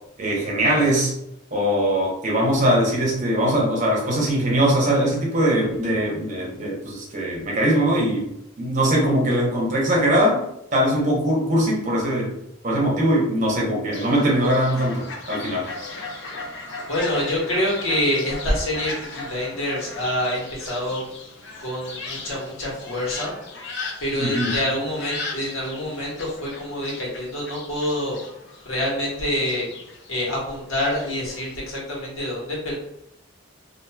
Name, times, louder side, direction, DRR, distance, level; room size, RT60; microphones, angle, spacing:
voice 1, 0.2-1.1 1.5-8.3 8.6-10.4 10.7-12.3 12.6-15.7 24.2-24.5, right 1 dB, 40° right, -3 dB, 0.8 m, -21 dB
Fowl, 13.9-31.5, left 3 dB, 60° left, 0.6 m, -37 dB
voice 2, 16.9-21.0 21.6-23.3 24.0-28.2 28.6-29.7 30.1-32.7, left 1 dB, 80° left, -5 dB, 1.2 m, -26 dB
2.8 x 2.5 x 2.3 m, 0.78 s
head